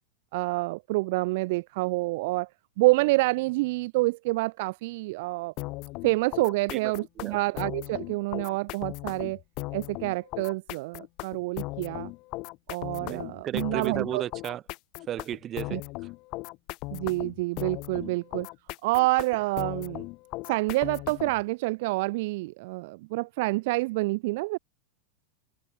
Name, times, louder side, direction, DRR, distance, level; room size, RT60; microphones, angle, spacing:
voice 1, 0.3-2.5 2.8-5.5 6.0-9.4 9.7-12.1 12.7-14.2 15.7-15.8 16.9-18.5 18.8-20.0 20.4-24.6, right 22 dB, 50° right, 0.5 m, -27 dB
sound 1, 5.6-21.4, left 23 dB, 40° left, 3.9 m, -38 dB
voice 2, 13.0-14.6 15.1-15.8 18.0-18.1, right 11 dB, 30° right, 0.9 m, -34 dB
figure-of-eight pair, 90°, 0 cm